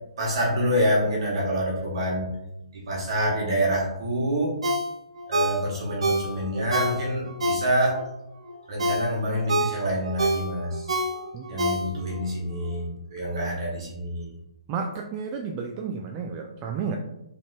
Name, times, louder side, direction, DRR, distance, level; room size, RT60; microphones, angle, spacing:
voice 1, 0.2-2.3 2.7-4.6 5.3-8.0 8.7-10.9 11.5-14.3, equal, 55° right, -4 dB, 1.4 m, -26 dB
Ringtone, 4.6-8.1 8.5-12.2 12.6-12.7, right 1 dB, 80° right, 0.8 m, -27 dB
voice 2, 14.7-17.0, right 6 dB, 25° right, 2 dB, 0.3 m, -32 dB
3.5 x 3.2 x 4.0 m, 0.87 s
hypercardioid pair, 155°, 3 cm